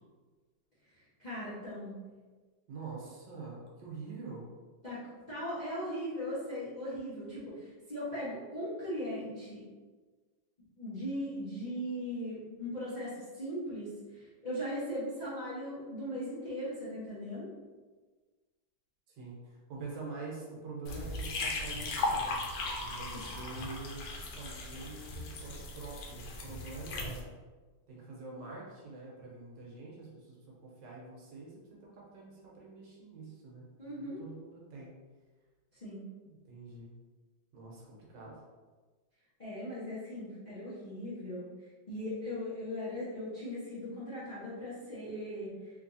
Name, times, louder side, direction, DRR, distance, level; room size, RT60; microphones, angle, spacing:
voice 1, 1.2-2.0 4.8-5.0 5.3-9.6 10.8-17.5 23.1-23.2 33.8-34.2 35.8-36.1 39.4-41.5 41.9-45.7, equal, 35° left, -11 dB, 0.7 m, -39 dB
voice 2, 2.7-4.5 19.2-22.4 22.8-24.0 24.4-27.3 27.9-30.4 30.6-31.5 31.8-33.6 34.0-34.9 36.2-36.9 37.5-38.3, right 3 dB, 70° right, -4 dB, 1.5 m, -45 dB
sound 1, 20.9-27.2, left 2 dB, 85° left, 1.4 m, -37 dB
3.3 x 3.2 x 2.6 m, 1.3 s
omnidirectional pair, 2.1 m